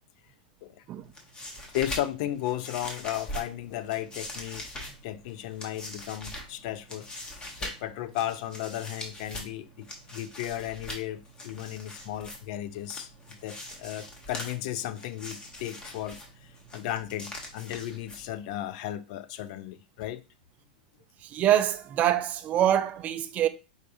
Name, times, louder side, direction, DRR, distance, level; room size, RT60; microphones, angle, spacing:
sound 1, 1.0-18.6, left 1 dB, 15° left, 1.0 m, -43 dB
voice 1, 1.7-4.7 5.0-13.1 13.4-20.2, left 13 dB, 55° left, 0.4 m, -35 dB
voice 2, 21.2-23.5, right 11 dB, 30° right, 0.4 m, -25 dB
4.7 x 3.3 x 2.6 m
hypercardioid pair, 125°, 5 cm